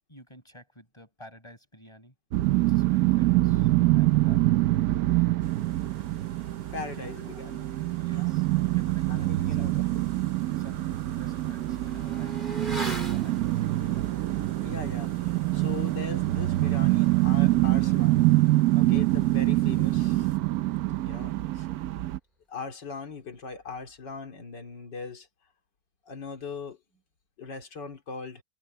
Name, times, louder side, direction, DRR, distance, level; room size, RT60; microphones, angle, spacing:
voice 1, 0.1-2.1 2.7-4.4 6.9-7.2 7.9-8.5 8.7-10.1 10.5-14.1, equal, 15° left, 8.2 m, -51 dB
sound 1, 2.3-22.2, right 17 dB, 70° right, 1.0 m, -25 dB
sound 2, 5.4-20.4, right 1 dB, 40° right, 7.3 m, -51 dB
voice 2, 6.7-7.7 8.1-8.4 9.1-10.0 14.6-18.3 18.7-20.6 21.0-21.7 22.5-25.3 26.1-26.8 27.4-28.4, left 4 dB, 80° left, 3.4 m, -40 dB
Motorcycle / Accelerating revving vroom, 10.7-20.1 20.4-20.5, right 2 dB, 25° right, 5.1 m, -43 dB
omnidirectional pair, 1.9 m